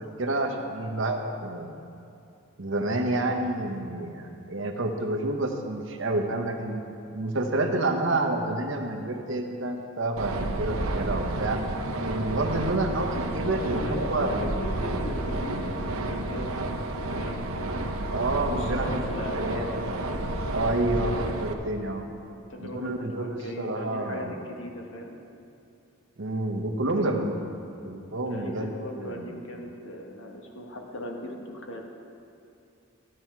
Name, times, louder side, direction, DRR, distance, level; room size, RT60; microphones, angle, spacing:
voice 1, 0.0-1.7 2.6-6.8 7.1-11.6 12.0-14.3 18.1-19.7 20.1-22.1 22.6-24.3 26.2-27.4 27.8-28.7 29.0-29.3, right 2 dB, 60° right, 3 dB, 1.0 m, -29 dB
sound 1, 10.2-21.5, right 1 dB, 85° right, 0.7 m, -31 dB
voice 2, 13.4-16.9 17.1-17.9 18.5-19.8 22.2-25.2 28.2-31.9, left 1 dB, 65° left, 1 dB, 1.3 m, -38 dB
12.5 x 8.6 x 4.6 m, 2.7 s
head